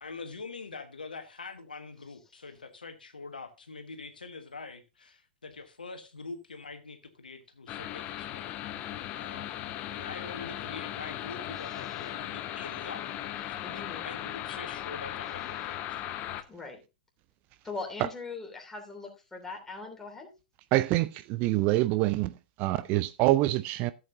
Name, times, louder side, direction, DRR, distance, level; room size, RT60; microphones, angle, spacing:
voice 1, 0.0-8.4 9.2-9.5 9.9-16.1, left 4 dB, 75° left, 1.4 m, -44 dB
sound 1, 7.7-16.4, left 12 dB, 30° left, 0.8 m, -37 dB
voice 2, 11.6-12.1 13.6-14.1 16.5-16.8 17.6-20.3, left 3 dB, 10° left, 3.0 m, -41 dB
voice 3, 20.7-22.3 22.6-23.9, right 17 dB, 35° right, 0.4 m, -25 dB
14.0 x 7.7 x 2.7 m
figure-of-eight pair, 105°, 5 cm